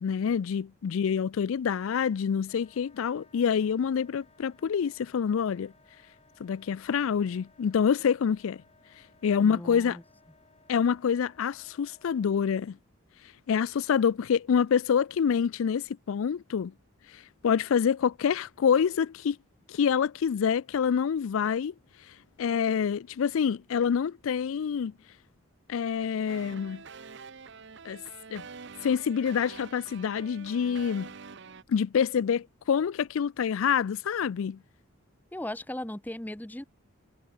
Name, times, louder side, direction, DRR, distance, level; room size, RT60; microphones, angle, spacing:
voice 1, 0.0-5.7 6.4-8.6 9.2-10.0 10.7-12.8 13.5-16.7 17.4-19.4 19.7-21.7 22.4-24.9 25.7-26.8 27.9-28.0 28.3-28.5 28.8-31.1 31.7-34.6, left 7 dB, 75° left, 0.4 m, -26 dB
Wind instrument woodwind instrument, 2.5-12.6, left 3 dB, 30° left, 7.4 m, -62 dB
voice 2, 9.4-10.0 35.3-36.6, left 1 dB, 10° left, 0.7 m, -37 dB
sound 1, 26.3-31.6, right 5 dB, 55° right, 0.8 m, -46 dB
head